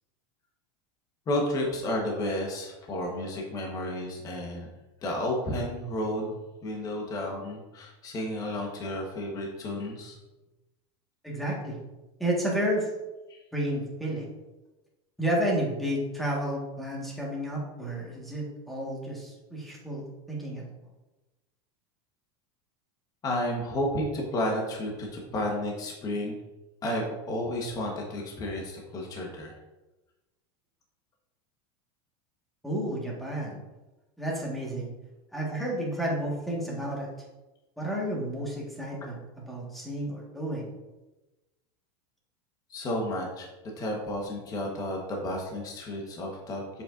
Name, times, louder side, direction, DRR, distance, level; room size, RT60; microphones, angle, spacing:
voice 1, 1.3-4.7 5.0-10.2 13.3-13.4 23.2-26.4 26.8-29.6 42.7-43.5 43.8-46.8, left 1 dB, 25° left, -1 dB, 1.1 m, -32 dB
voice 2, 11.2-11.8 12.2-12.9 13.5-14.3 15.2-20.6 32.6-33.6 34.2-34.9 35.3-37.1 37.8-39.2 39.5-40.7, right 1 dB, ahead, -4 dB, 1.4 m, -31 dB
7.1 x 5.4 x 2.5 m, 1.1 s
supercardioid pair, 150°, 15 cm